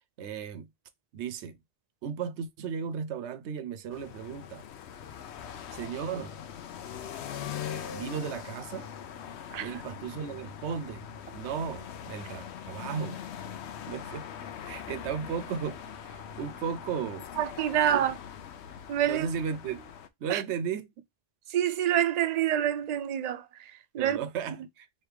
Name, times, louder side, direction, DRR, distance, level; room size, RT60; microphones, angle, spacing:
voice 1, 0.2-0.7 1.1-1.6 2.0-4.6 5.7-6.3 7.9-8.9 9.6-11.0 11.3-13.2 13.9-14.3 14.6-15.8 16.0-17.3 17.9-18.1 19.0-19.9 20.2-20.9 24.0-24.9, right 7 dB, 85° right, 0.9 m, -35 dB
sound 1, 3.9-20.1, left 8 dB, 75° left, 0.9 m, -42 dB
voice 2, 17.4-18.1 18.9-19.3 20.3-20.4 21.5-23.4 23.9-24.2, right 10 dB, 55° right, 0.4 m, -26 dB
3.3 x 2.9 x 4.7 m
omnidirectional pair, 1.1 m